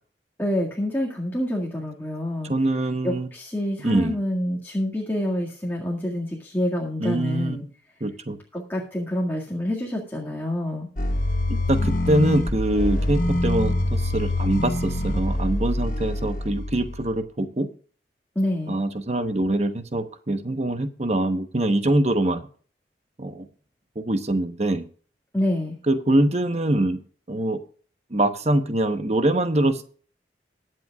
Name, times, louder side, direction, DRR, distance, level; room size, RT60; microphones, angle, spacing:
voice 1, 0.4-2.5 3.0-7.6 8.5-10.9 18.4-18.7 25.3-25.8, left 1 dB, 10° left, -2 dB, 1.9 m, -27 dB
voice 2, 2.5-3.3 3.8-4.2 7.0-7.6 8.0-8.4 11.5-17.7 18.7-22.5 23.2-23.4 23.9-24.8 25.9-27.0 27.3-27.6 28.1-30.0, right 1 dB, 35° right, 8 dB, 1.0 m, -24 dB
sound 1, 11.0-17.2, left 1 dB, 50° left, 1.2 m, -25 dB
21.5 x 7.7 x 2.4 m, 0.44 s
head